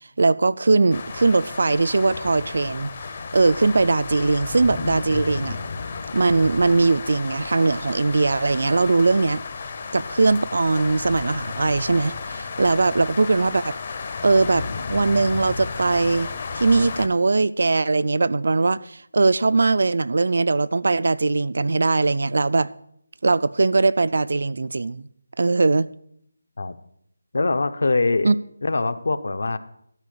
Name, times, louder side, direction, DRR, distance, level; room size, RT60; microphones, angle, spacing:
voice 1, 0.2-2.9 3.3-5.6 6.1-9.4 9.9-13.8 14.2-14.6 14.9-22.7 23.2-25.1 25.4-25.9 28.2-28.3, right 3 dB, 55° right, 0.4 m, -20 dB
sound 1, 0.9-17.1, left 4 dB, 30° left, 0.7 m, -33 dB
voice 2, 27.3-28.3 28.6-29.6, left 3 dB, 60° left, 0.8 m, -23 dB
12.5 x 4.9 x 8.5 m
figure-of-eight pair, 175°, 0 cm